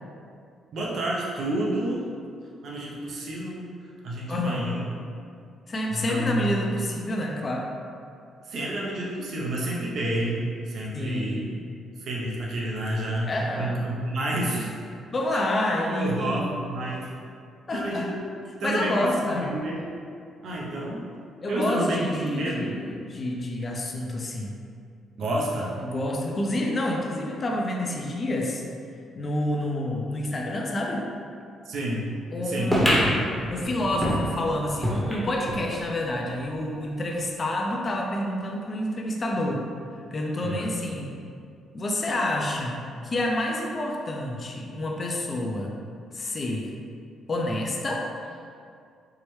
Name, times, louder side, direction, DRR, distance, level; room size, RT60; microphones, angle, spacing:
voice 1, 0.7-2.1 2.6-3.7 4.0-4.8 5.9-6.6 8.4-11.4 12.0-14.7 15.3-15.4 15.9-17.1 17.7-18.2 18.6-19.9 20.4-21.1 21.5-22.8 25.2-25.7 31.6-32.1 32.5-32.7 40.4-40.7, right 1 dB, 65° right, -4 dB, 0.6 m, -29 dB
voice 2, 4.3-4.9 5.7-7.7 10.9-11.7 13.2-13.8 14.6-14.7 15.1-16.5 17.7-18.1 18.6-19.5 21.4-24.6 25.8-28.6 29.2-31.1 32.3-33.1 33.5-39.6 40.1-41.2 41.7-45.7 46.1-46.7 47.3-48.1, left 1 dB, 35° left, 0 dB, 0.4 m, -28 dB
sound 1, 32.7-35.7 36.1-36.2 36.4-36.5 37.3-37.4, equal, 15° right, 0.8 m, -25 dB
4.6 x 2.1 x 3.1 m, 2.3 s
cardioid pair, 90°, 0 cm